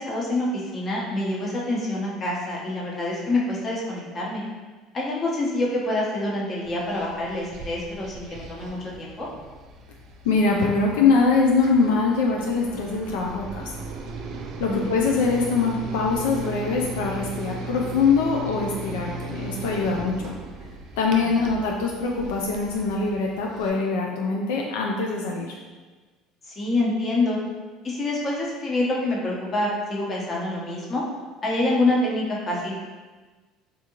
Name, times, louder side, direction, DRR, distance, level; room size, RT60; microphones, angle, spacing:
voice 1, 0.0-4.4 4.9-9.3 14.7-14.9 21.2-21.5 26.5-27.4 27.8-31.0 31.4-32.8, left 2 dB, 35° left, -4 dB, 0.9 m, -26 dB
sound 1, 6.6-23.7, right 3 dB, 55° right, 0.4 m, -37 dB
voice 2, 10.2-13.7 14.6-20.3 21.0-25.5, left 4 dB, 85° left, -1 dB, 0.3 m, -23 dB
3.5 x 2.4 x 2.9 m, 1.3 s
supercardioid pair, 100°, 0 cm